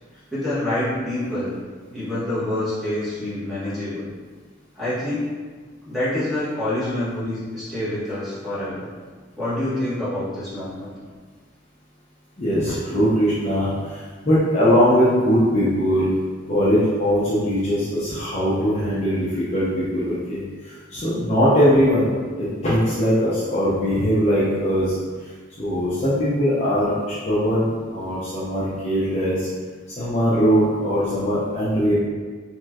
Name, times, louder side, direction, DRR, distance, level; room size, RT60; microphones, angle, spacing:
voice 1, 0.3-1.5 1.9-4.1 4.7-5.3 5.8-8.9 9.4-10.9, left 1 dB, ahead, -13 dB, 1.2 m, -26 dB
voice 2, 12.4-16.1 16.5-22.1 22.4-25.0 25.6-29.5 30.0-31.9, equal, 35° left, -10 dB, 0.6 m, -21 dB
3.0 x 3.0 x 2.3 m, 1.5 s
head